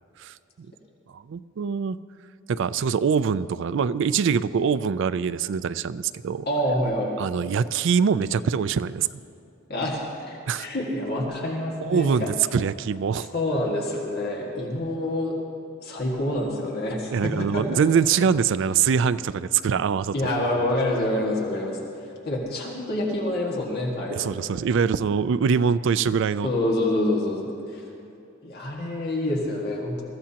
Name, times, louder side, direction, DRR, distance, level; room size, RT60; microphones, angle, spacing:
voice 1, 0.2-0.7 1.1-2.0 2.5-6.5 7.2-9.1 10.5-10.7 11.8-13.3 17.1-20.1 24.1-26.5, right 6 dB, 65° right, 16 dB, 0.4 m, -23 dB
voice 2, 6.4-7.2 9.7-12.3 13.3-15.4 15.8-17.8 20.1-21.8 22.2-24.3 26.4-27.8 28.4-30.0, left 1 dB, 55° left, -2 dB, 1.8 m, -27 dB
22.0 x 14.5 x 2.9 m, 2.8 s
head